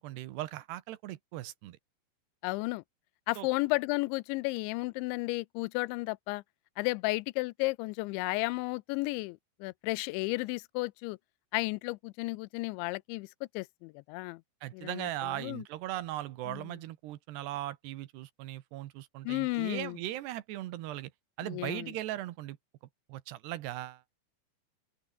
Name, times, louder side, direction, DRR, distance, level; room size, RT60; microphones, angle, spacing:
voice 1, 0.0-1.8 3.4-3.5 14.6-21.1 21.4-22.6 23.1-24.0, right 15 dB, 75° right, 3.0 m, -38 dB
voice 2, 2.4-2.8 3.3-6.4 6.8-11.2 11.5-13.3 13.5-14.4 14.7-15.6 16.5-16.7 19.2-20.0 21.4-21.9, left 24 dB, 90° left, 2.9 m, -33 dB
open air
omnidirectional pair, 5.2 m